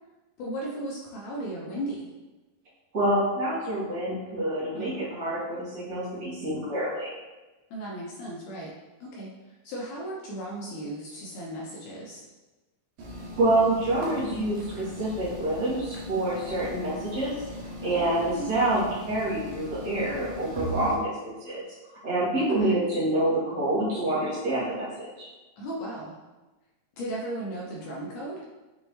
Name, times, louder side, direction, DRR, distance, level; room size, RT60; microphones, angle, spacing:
voice 1, 0.4-2.1 4.7-5.0 7.7-8.7 9.0-12.2 17.8-19.2 20.8-21.1 22.4-22.8 25.6-26.2 27.0-28.4, right 1 dB, 75° left, -4 dB, 1.9 m, -36 dB
voice 2, 2.9-7.1 13.4-17.3 17.8-21.6 22.0-25.3, right 1 dB, 90° right, -9 dB, 0.6 m, -27 dB
sound 1, 13.0-20.9, left 1 dB, 70° right, 1.9 m, -39 dB
6.5 x 2.6 x 3.0 m, 1.1 s
omnidirectional pair, 4.1 m